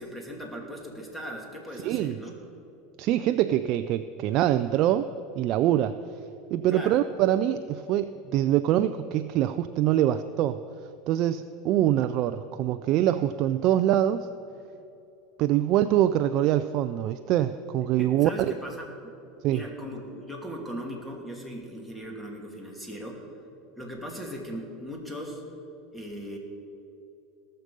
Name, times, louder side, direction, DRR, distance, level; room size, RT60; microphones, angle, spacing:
voice 1, 0.0-2.4 6.7-7.0 18.0-19.1 19.5-23.2 23.8-25.4 25.9-26.4, equal, 5° left, 0 dB, 2.6 m, -38 dB
voice 2, 1.8-2.2 3.0-6.0 6.5-10.6 11.1-14.3 15.4-18.3 19.4-19.7, right 12 dB, 55° right, 11 dB, 0.4 m, -24 dB
18.5 x 6.6 x 5.2 m, 2.8 s
hypercardioid pair, 100°, 0 cm